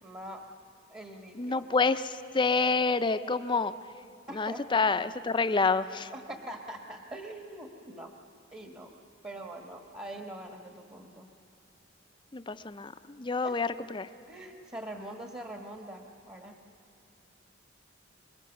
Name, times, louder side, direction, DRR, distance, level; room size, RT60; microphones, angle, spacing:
voice 1, 0.0-0.5 0.9-1.7 4.3-5.0 6.1-8.2 8.5-8.9 9.2-11.3 13.4-13.7 14.3-16.6, right 1 dB, 25° right, 3 dB, 1.3 m, -43 dB
voice 2, 1.4-3.7 4.3-6.1 12.3-12.9 13.2-14.1, left 4 dB, 25° left, 12 dB, 0.5 m, -28 dB
25.0 x 22.0 x 7.1 m, 3.0 s
head